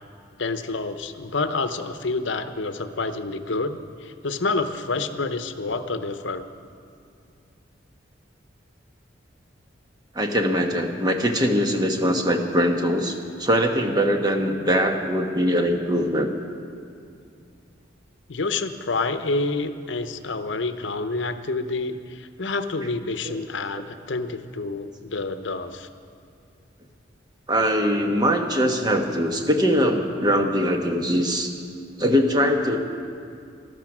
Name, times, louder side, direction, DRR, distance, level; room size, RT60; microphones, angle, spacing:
voice 1, 0.4-6.5 18.3-25.9, left 3 dB, 75° left, 10 dB, 0.8 m, -28 dB
voice 2, 10.1-16.3 23.2-23.3 27.5-31.5 32.0-32.8, equal, 20° right, 4 dB, 1.1 m, -22 dB
15.0 x 12.5 x 6.0 m, 2.4 s
head